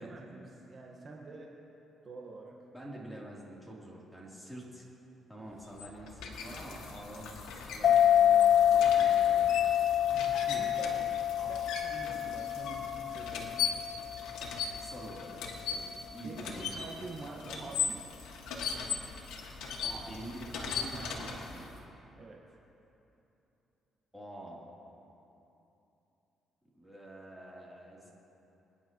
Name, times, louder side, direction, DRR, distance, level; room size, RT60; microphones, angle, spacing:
voice 1, 0.0-1.5 2.0-2.6 10.2-10.3 10.6-11.0 11.5-13.8 16.2-18.3 22.2-22.4, right 3 dB, 45° right, -1 dB, 1.5 m, -46 dB
voice 2, 2.7-4.8 5.3-9.7 10.1-11.0 11.4-11.5 14.5-15.3 15.6-16.8 19.8-21.7 24.1-24.7 26.7-28.1, right 1 dB, ahead, -5 dB, 3.4 m, -47 dB
sound 1, 5.5-21.8, left 6 dB, 90° left, 1.8 m, -39 dB
sound 2, 7.8-14.9, left 10 dB, 60° left, 0.4 m, -27 dB
26.5 x 10.5 x 3.1 m, 2.9 s
cardioid pair, 90°, 0 cm